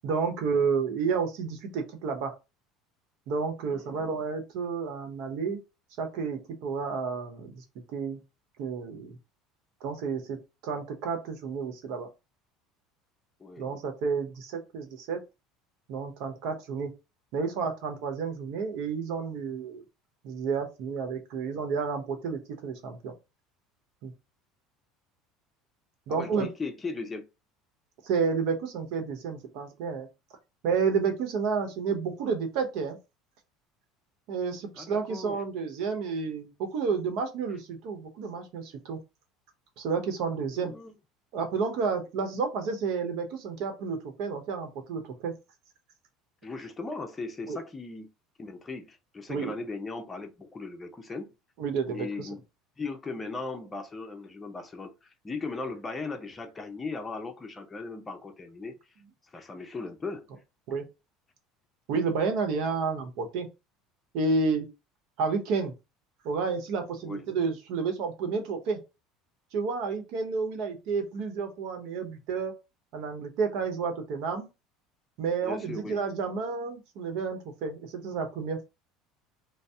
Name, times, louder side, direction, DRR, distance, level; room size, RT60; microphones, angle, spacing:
voice 1, 0.0-2.3 3.3-5.6 6.0-7.6 7.9-8.2 8.6-9.2 9.8-10.4 10.6-12.1 13.6-15.2 15.9-16.9 17.3-19.8 20.2-23.1 24.0-24.1 26.1-26.5 28.0-30.1 30.6-33.0 34.3-39.0 39.8-40.7 41.3-45.3 47.5-47.6 49.3-49.5 51.6-52.3 60.7-60.9 61.9-63.5 64.1-64.7 65.2-65.7 66.2-68.8 69.5-72.5 72.9-74.5 75.2-78.6, right 5 dB, 70° right, 0.9 m, -30 dB
voice 2, 3.7-4.1 13.4-13.6 26.1-27.2 34.8-35.4 40.5-40.9 46.4-48.1 48.4-51.3 51.9-52.4 52.8-58.8 59.3-60.3 67.0-67.2 75.4-76.0, left 3 dB, 20° left, 0.6 m, -38 dB
2.6 x 2.0 x 3.4 m
supercardioid pair, 100°, 0 cm